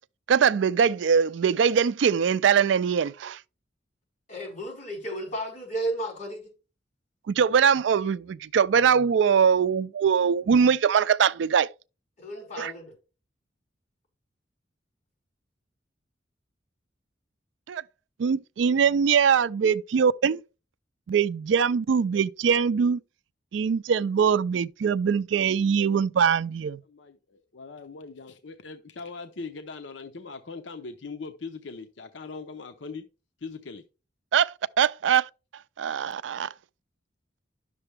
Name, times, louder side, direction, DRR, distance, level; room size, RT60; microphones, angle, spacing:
voice 1, 0.3-3.4 7.3-11.7 12.6-12.7 17.7-17.8 18.2-20.4 21.1-23.0 23.5-26.8 34.3-35.3 35.8-36.5, right 7 dB, 75° right, 0.4 m, -22 dB
voice 2, 4.3-6.5 12.2-12.9, right 1 dB, 40° left, 5.0 m, -33 dB
voice 3, 26.9-33.1 33.4-33.8, left 4 dB, 75° left, 0.7 m, -40 dB
11.0 x 6.7 x 3.3 m
head